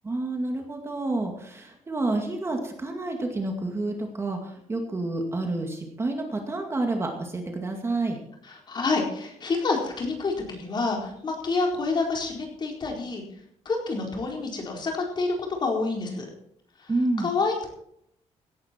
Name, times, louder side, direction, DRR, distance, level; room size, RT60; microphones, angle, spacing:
voice 1, 0.0-8.2 16.9-17.3, right 2 dB, 20° right, 3 dB, 2.2 m, -29 dB
voice 2, 8.5-13.2 13.6-15.3 15.6-16.3 16.8-16.9 17.2-17.7, left 3 dB, 35° left, 1 dB, 4.3 m, -28 dB
17.0 x 11.5 x 4.5 m, 0.71 s
cardioid pair, 140°, 12 cm